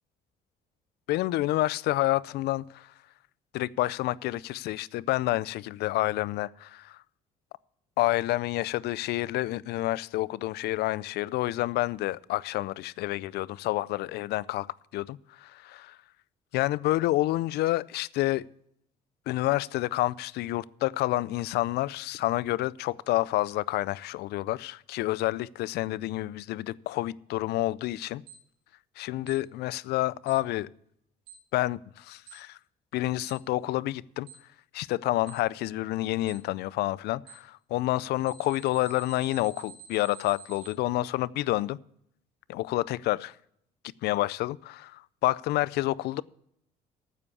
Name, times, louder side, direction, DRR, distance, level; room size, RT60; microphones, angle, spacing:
voice 1, 1.1-2.9 3.5-7.0 8.0-14.7 14.9-16.0 16.5-18.5 19.3-28.2 29.0-30.7 31.5-32.6 32.9-34.3 34.7-41.8 42.5-43.3 44.0-46.2, left 17 dB, 75° left, 0.4 m, -29 dB
Alarm, 28.3-28.4 29.3-29.4 30.3-30.4 31.3-31.4 32.3-32.4 33.3-33.4 34.3-34.4 35.3-35.4 36.3-36.4 37.3-37.4 38.3-40.7, right 10 dB, 85° right, 2.6 m, -47 dB
9.5 x 7.7 x 8.3 m
cardioid pair, 110°, 17 cm